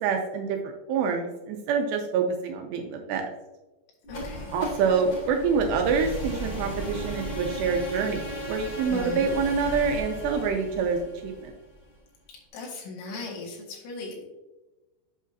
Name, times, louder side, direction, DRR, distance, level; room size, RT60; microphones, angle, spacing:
voice 1, 0.0-3.2 4.5-11.5, right 5 dB, 80° right, 3 dB, 2.6 m, -26 dB
sound 1, 4.0-12.0, equal, 35° left, 2.0 m, -35 dB
voice 2, 4.1-4.5 8.9-9.3 12.5-14.2, left 3 dB, 80° left, -3 dB, 3.9 m, -37 dB
8.1 x 6.0 x 2.7 m, 1.1 s
omnidirectional pair, 5.2 m